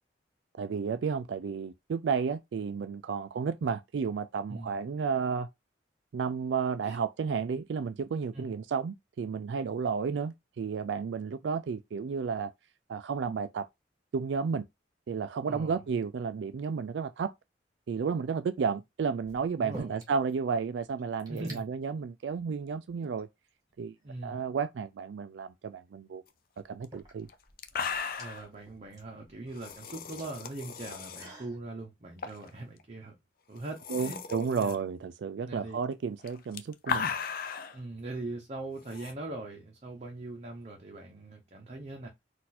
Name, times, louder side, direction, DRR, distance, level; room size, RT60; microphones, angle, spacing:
voice 1, 0.6-5.5 6.1-12.5 12.9-13.7 14.1-14.6 15.1-17.3 17.9-23.3 23.8-23.9 24.2-26.2 26.7-27.3 33.9-37.1, right 5 dB, 70° right, 0.3 m, -32 dB
voice 2, 15.5-15.8 19.6-20.0 21.3-21.7 24.0-24.4 28.2-33.2 33.5-34.2 34.6-34.8 35.5-35.8 37.7-42.1, right 2 dB, 40° right, 0.8 m, -41 dB
sound 1, 18.1-18.5 19.2-20.3 20.6-20.7 20.9-21.6 22.4-22.6 23.2-24.1 25.8-25.9 26.6-31.6, right 1 dB, 20° right, 2.0 m, -51 dB
sound 2, 26.8-26.9 27.3-27.4 27.6-28.5 29.5-31.3 32.2-32.5 32.8-32.9 33.6-34.8 36.2-37.8 38.9-39.1, left 6 dB, 55° left, 0.6 m, -36 dB
4.2 x 2.6 x 4.1 m
head